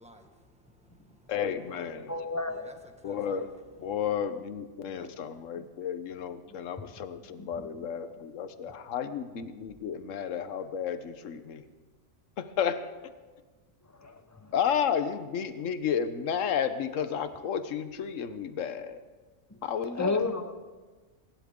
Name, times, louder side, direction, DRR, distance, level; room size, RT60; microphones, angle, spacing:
voice 1, 0.0-1.3 2.0-3.5, equal, 5° right, 1.4 m, -56 dB
voice 2, 1.3-2.1 3.0-3.5 3.8-11.6 12.4-12.9 14.5-19.0 19.6-20.2, left 8 dB, 70° left, 1.2 m, -32 dB
voice 3, 2.1-2.7 5.0-5.1 14.0-14.1 20.0-20.5, left 3 dB, 15° left, 0.8 m, -30 dB
28.5 x 11.5 x 3.7 m
omnidirectional pair, 1.4 m